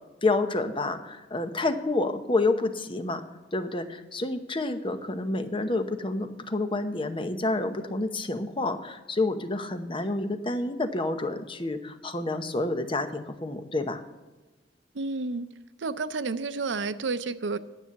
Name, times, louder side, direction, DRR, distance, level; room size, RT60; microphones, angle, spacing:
voice 1, 0.2-3.2 3.5-14.0, left 2 dB, 30° left, 8 dB, 0.9 m, -29 dB
voice 2, 14.9-15.5 15.8-17.6, right 3 dB, 85° right, 12 dB, 0.6 m, -30 dB
10.0 x 8.1 x 7.2 m, 1.2 s
head